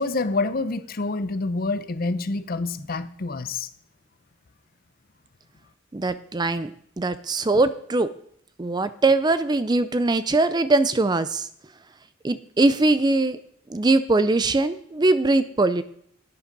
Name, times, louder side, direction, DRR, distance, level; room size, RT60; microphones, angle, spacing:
voice 1, 0.0-3.7, left 3 dB, 45° left, 13 dB, 0.6 m, -27 dB
voice 2, 5.9-6.7 7.0-8.1 8.6-11.5 12.2-13.4 13.7-15.8, right 2 dB, 20° right, 13 dB, 0.4 m, -21 dB
11.5 x 9.9 x 5.2 m, 0.66 s
head